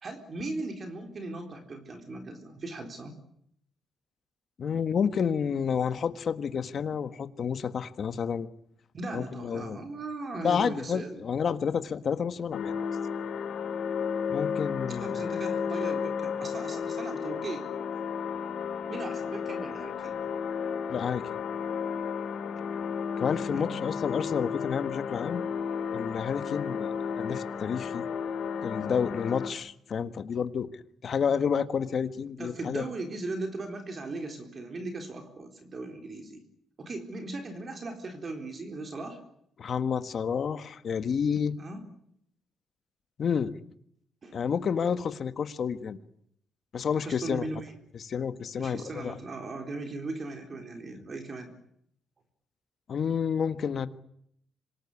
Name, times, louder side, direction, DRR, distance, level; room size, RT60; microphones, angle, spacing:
voice 1, 0.0-3.1 8.9-11.2 14.9-17.7 18.9-20.2 23.5-23.7 32.4-36.4 36.8-39.2 41.6-41.8 44.2-44.4 46.9-47.7 48.6-51.5, right 2 dB, 35° right, 5 dB, 3.9 m, -38 dB
voice 2, 4.6-8.5 9.1-9.8 10.4-12.7 14.3-15.2 20.9-21.3 23.2-25.4 25.9-26.9 27.2-28.0 28.6-30.7 31.0-32.8 39.6-41.6 43.2-43.6 44.3-46.0 46.7-47.5 47.9-49.1 52.9-53.9, left 7 dB, 45° left, 11 dB, 1.5 m, -30 dB
sound 1, 12.5-29.5, left 6 dB, 60° left, 4.0 m, -33 dB
26.0 x 19.0 x 9.9 m, 0.72 s
cardioid pair, 135°, 0 cm